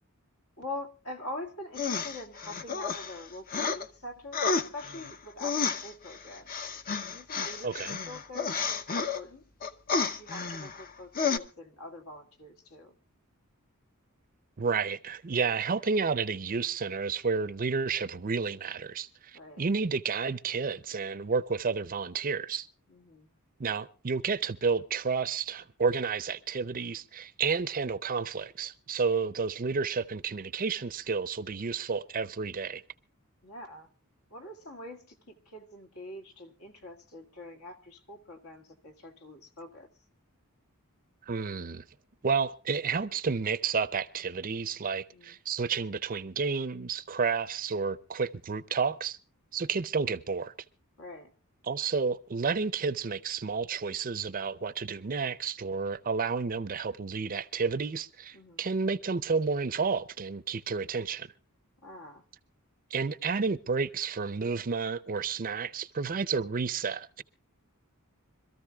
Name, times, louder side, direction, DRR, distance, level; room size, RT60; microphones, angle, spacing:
voice 1, 0.6-6.7 7.1-9.7 10.0-13.0 19.3-19.6 22.9-23.3 33.4-33.9 34.3-39.9 45.1-45.4 51.0-51.3 58.3-58.6 61.8-62.2, left 1 dB, 70° left, 2.0 m, -44 dB
sound 1, 1.8-3.9 4.3-9.2 9.6-10.9 11.2-11.4, left 5 dB, 40° left, 0.7 m, -31 dB
voice 2, 7.6-8.0 14.6-22.7 23.6-32.8 41.3-41.8 42.2-49.2 49.5-50.5 51.6-61.3 62.9-67.2, right 5 dB, 40° right, 0.6 m, -31 dB
26.0 x 14.0 x 2.4 m
head